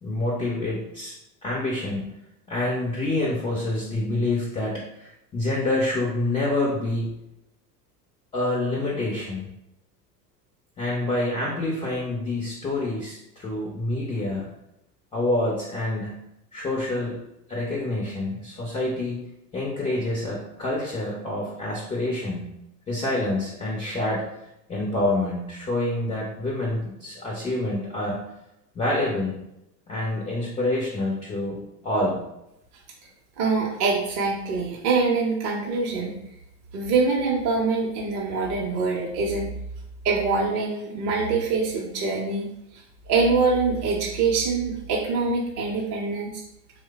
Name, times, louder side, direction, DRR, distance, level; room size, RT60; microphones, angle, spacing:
voice 1, 0.0-1.1 1.4-2.0 2.5-7.1 8.3-9.5 10.8-14.5 15.1-16.2 16.5-17.2 17.5-19.3 19.5-22.5 22.9-24.3 24.7-28.3 28.7-29.3 29.9-32.2, left 2 dB, 10° left, -3 dB, 0.4 m, -27 dB
voice 2, 33.4-36.2 36.7-39.5 40.0-42.5 43.1-46.4, right 4 dB, 35° right, -2 dB, 0.6 m, -24 dB
3.1 x 2.1 x 3.3 m, 0.84 s
figure-of-eight pair, 80°, 50 cm